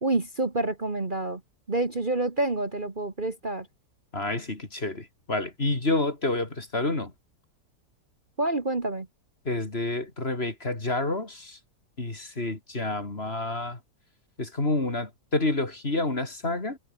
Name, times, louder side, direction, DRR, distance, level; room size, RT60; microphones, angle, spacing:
voice 1, 0.0-1.4 1.7-3.7 8.4-9.1, right 2 dB, 30° right, 2.1 m, -28 dB
voice 2, 4.1-7.1 9.5-11.6 12.0-13.8 14.4-16.8, left 2 dB, 35° left, 3.5 m, -29 dB
omnidirectional pair, 1.8 m